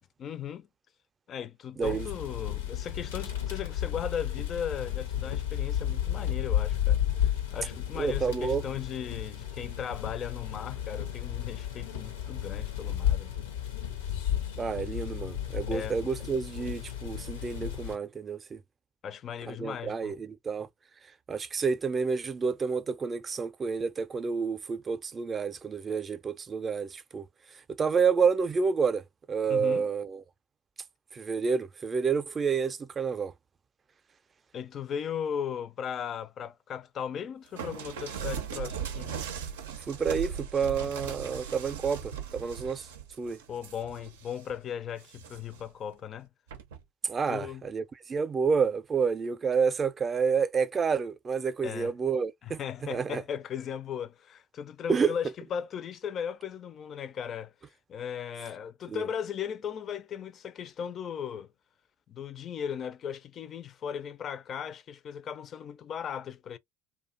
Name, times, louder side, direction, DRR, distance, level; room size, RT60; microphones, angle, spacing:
voice 1, 0.2-0.7 1.3-13.3 15.7-16.1 19.0-20.1 29.5-29.9 34.5-39.2 43.5-46.3 47.3-47.6 51.6-51.9 52.4-57.5 57.9-61.5 62.1-66.6, left 8 dB, 45° left, 0.4 m, -37 dB
sound 1, 1.8-18.0, left 10 dB, 85° left, 0.7 m, -33 dB
voice 2, 1.8-2.1 8.0-8.7 14.6-18.6 19.5-20.7 21.3-27.3 27.7-30.2 31.1-33.3 39.9-42.9 43.2-43.4 47.0-52.6 52.9-53.2 54.9-55.1 58.9-59.0, right 5 dB, 30° right, 0.5 m, -29 dB
sound 2, 37.6-44.5 45.0-45.6 46.5-46.8, right 8 dB, 85° right, 0.5 m, -38 dB
2.5 x 2.2 x 2.4 m
hypercardioid pair, 75°, 0 cm